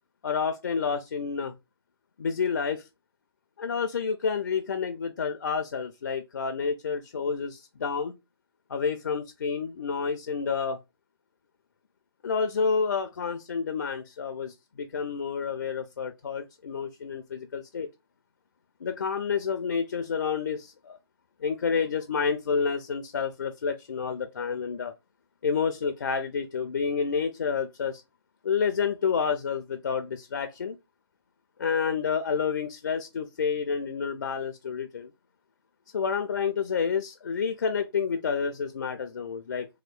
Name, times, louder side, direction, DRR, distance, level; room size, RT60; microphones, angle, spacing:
voice 1, 0.2-1.6 2.2-2.9 3.6-8.2 8.7-10.8 12.2-17.9 18.8-21.0 21.4-24.9 25.4-28.0 28.4-30.8 31.6-35.1 35.9-39.7, left 6 dB, 50° left, 0.4 m, -29 dB
3.0 x 2.8 x 2.3 m
figure-of-eight pair, 150°, 13 cm